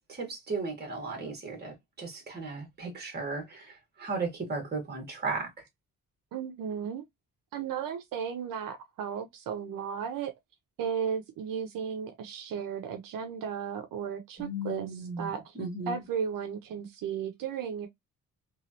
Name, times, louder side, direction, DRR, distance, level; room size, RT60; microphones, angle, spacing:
voice 1, 0.0-5.6 14.4-15.3 15.5-16.0, right 3 dB, 30° right, 1.5 m, -36 dB
voice 2, 6.3-7.0 7.5-10.3 10.8-14.9 15.2-15.5 15.9-17.9, right 7 dB, 80° right, 0.6 m, -35 dB
3.1 x 2.4 x 2.6 m
cardioid pair, 150°, 33 cm